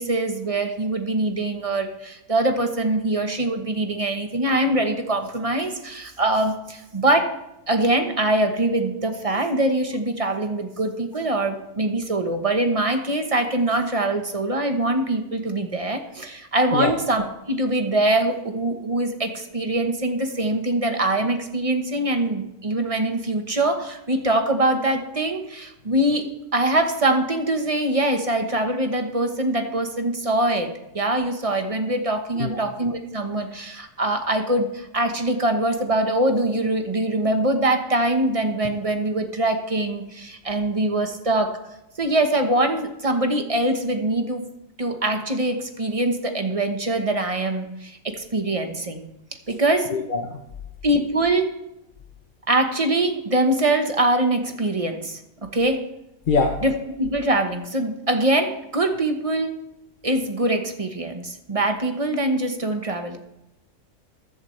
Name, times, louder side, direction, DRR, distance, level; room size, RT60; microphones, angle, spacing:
voice 1, 0.0-7.3 7.7-26.2 26.5-41.5 42.0-44.4 44.8-49.1 49.5-49.9 50.8-51.5 52.5-55.8 56.6-59.5 60.0-63.2, right 1 dB, 25° right, 5 dB, 1.1 m, -23 dB
voice 2, 49.9-50.4 56.3-56.6, left 4 dB, 40° left, 3 dB, 0.9 m, -22 dB
15.0 x 11.0 x 3.3 m, 0.90 s
omnidirectional pair, 1.5 m